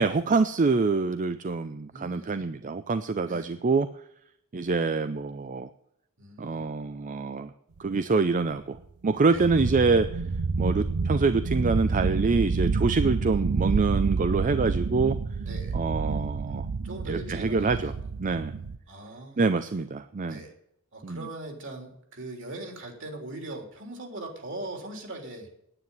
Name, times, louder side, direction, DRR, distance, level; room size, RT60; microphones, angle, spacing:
voice 1, 0.0-3.9 4.5-5.7 6.4-7.5 7.8-8.8 9.0-10.2 10.6-15.2 15.7-16.7 17.1-17.9 18.2-18.5 19.4-20.4 21.0-21.3, right 4 dB, 35° right, 11 dB, 0.5 m, -25 dB
voice 2, 1.9-2.5 3.2-3.6 6.2-6.7 9.3-9.4 15.4-15.8 16.8-17.9 18.9-19.4 20.3-20.5 20.9-25.5, right 2 dB, 55° right, 3 dB, 3.4 m, -40 dB
sound 1, 8.5-8.6 8.8-8.9 9.3-18.8, right 4 dB, 75° right, 0.6 m, -29 dB
9.8 x 9.5 x 9.2 m, 0.74 s
head